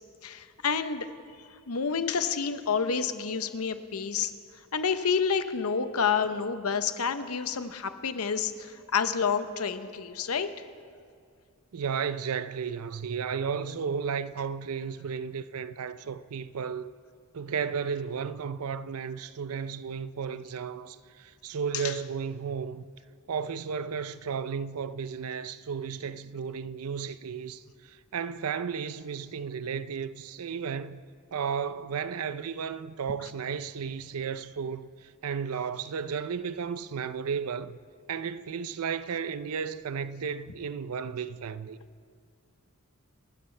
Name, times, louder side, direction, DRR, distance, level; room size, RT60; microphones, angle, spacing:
voice 1, 0.2-1.1 1.7-4.3 4.7-10.5 21.7-21.9, left 6 dB, 85° left, 0.8 m, -29 dB
voice 2, 11.7-16.9 17.3-22.9 23.3-31.0 31.3-37.8 38.1-41.8, right 6 dB, 90° right, 0.5 m, -34 dB
27.5 x 12.5 x 3.3 m
head